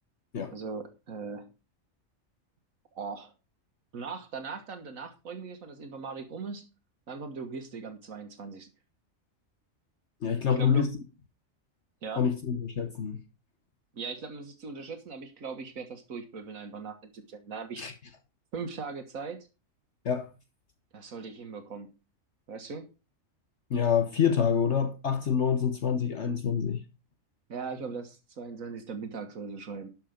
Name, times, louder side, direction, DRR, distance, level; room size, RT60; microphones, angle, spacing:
voice 1, 0.5-1.5 3.0-3.3 3.9-6.7 7.1-8.7 10.5-10.9 12.0-12.2 13.9-17.8 18.5-19.4 20.9-22.0 22.5-22.9 27.5-29.9, right 4 dB, 80° right, 1.8 m, -39 dB
voice 2, 10.2-10.9 12.2-13.2 17.8-17.9 20.0-20.3 23.7-26.8, left 7 dB, 60° left, 1.3 m, -26 dB
12.0 x 6.2 x 5.1 m
omnidirectional pair, 1.4 m